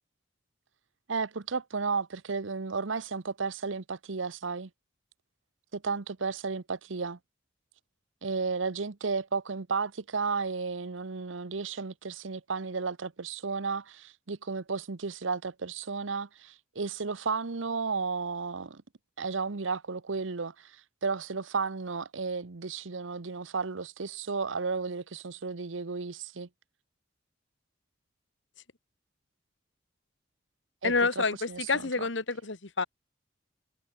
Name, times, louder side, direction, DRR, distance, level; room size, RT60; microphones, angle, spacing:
voice 1, 1.1-4.7 5.7-7.2 8.2-18.8 19.2-26.5 30.8-31.7, right 4 dB, 80° right, 0.9 m, -33 dB
voice 2, 30.8-32.8, left 4 dB, 70° left, 1.7 m, -28 dB
head